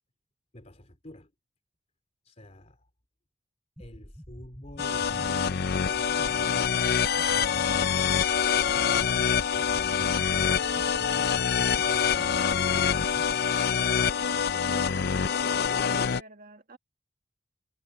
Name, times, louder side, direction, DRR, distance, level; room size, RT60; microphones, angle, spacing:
voice 1, 0.5-1.3 2.2-2.9 3.8-8.0 10.4-10.7 11.6-12.6, left 1 dB, 35° left, 3.2 m, -49 dB
sound 1, 3.8-13.3, equal, ahead, 0.7 m, -47 dB
sound 2, 4.8-16.2, left 7 dB, 55° left, 0.6 m, -25 dB
voice 2, 10.7-11.4 14.7-16.8, right 2 dB, 50° right, 1.8 m, -51 dB
head